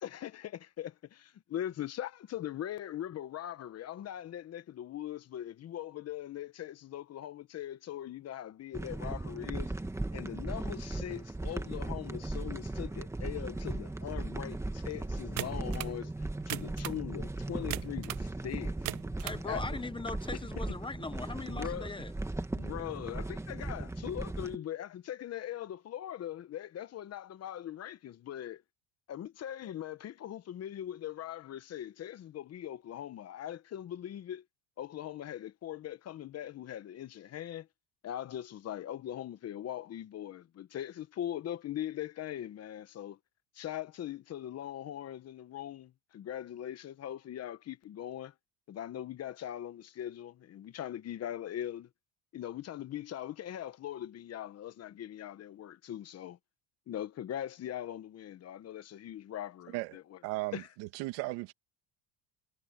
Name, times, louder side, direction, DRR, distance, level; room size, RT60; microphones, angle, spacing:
voice 1, 0.0-9.7 10.1-18.7 19.5-19.8 20.3-20.8 21.4-21.9 22.5-28.6 29.1-34.4 34.8-37.7 38.0-43.2 43.5-48.3 48.7-51.9 52.3-56.4 56.9-60.2 60.5-60.7, left 11 dB, 40° left, 1.1 m, -41 dB
sound 1, 8.7-24.6, right 2 dB, 5° right, 1.5 m, -37 dB
sound 2, 15.4-16.0 16.4-17.0 17.7-18.3 18.7-19.4, right 18 dB, 50° right, 0.5 m, -38 dB
voice 2, 19.2-22.1, left 3 dB, 15° left, 1.0 m, -40 dB
voice 3, 60.2-61.5, right 21 dB, 85° right, 2.3 m, -36 dB
cardioid pair, 135°, 39 cm